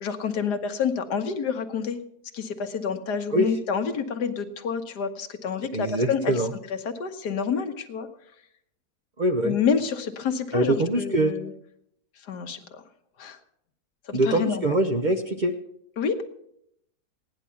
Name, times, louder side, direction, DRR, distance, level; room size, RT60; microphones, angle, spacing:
voice 1, 0.0-2.0 2.3-6.4 6.7-8.1 9.4-11.5 12.2-12.8 13.2-13.4 14.1-14.7 16.0-16.2, left 6 dB, 80° left, 7 dB, 1.7 m, -28 dB
voice 2, 5.7-6.5 9.2-9.6 10.5-11.3 14.1-15.5, right 1 dB, 40° right, 5 dB, 0.7 m, -23 dB
17.0 x 10.5 x 5.8 m, 0.74 s
omnidirectional pair, 1.8 m